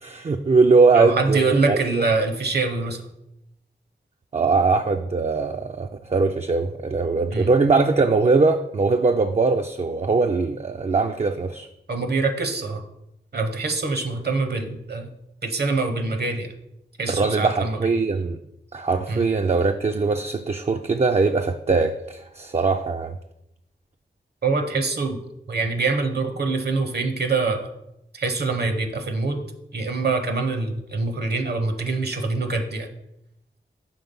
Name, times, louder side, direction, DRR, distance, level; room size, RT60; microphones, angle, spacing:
voice 1, 0.0-2.1 4.3-11.7 17.1-18.4 18.7-23.1, right 4 dB, 35° right, 5 dB, 0.4 m, -21 dB
voice 2, 0.9-3.0 7.3-7.5 11.9-12.8 13.3-15.1 15.4-16.5 17.0-17.8 19.1-19.2 24.4-25.2 25.5-27.7 28.1-29.4 29.7-32.9, right 3 dB, 60° right, 6 dB, 0.9 m, -24 dB
5.8 x 3.5 x 5.3 m, 0.84 s
cardioid pair, 50°, 19 cm